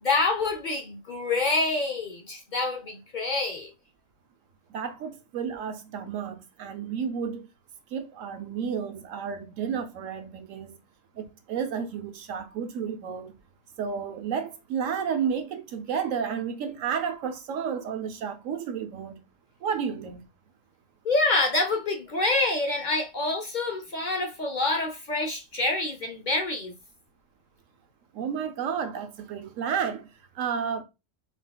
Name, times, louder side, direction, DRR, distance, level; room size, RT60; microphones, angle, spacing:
voice 1, 0.0-3.7 21.0-26.7, left 2 dB, 50° left, 0.6 m, -27 dB
voice 2, 4.7-7.4 7.9-10.8 11.2-13.4 13.8-19.2 19.6-20.3 28.1-30.1 30.3-30.8, right 7 dB, 85° right, 1.1 m, -31 dB
5.8 x 3.3 x 2.3 m
omnidirectional pair, 1.3 m